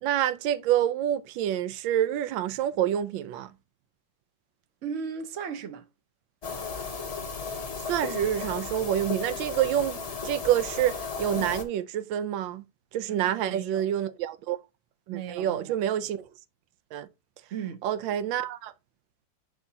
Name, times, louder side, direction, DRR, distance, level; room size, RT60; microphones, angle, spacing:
voice 1, 0.0-3.5 7.9-12.6 12.9-14.6 15.1-16.2 16.9-17.1 17.8-18.7, right 11 dB, 85° right, 1.4 m, -27 dB
voice 2, 4.8-5.8 13.1-13.9 15.1-15.8 17.5-17.8, right 7 dB, 50° right, 1.0 m, -36 dB
sound 1, 6.4-11.6, left 5 dB, 65° left, 0.3 m, -35 dB
10.5 x 3.6 x 2.7 m
omnidirectional pair, 2.0 m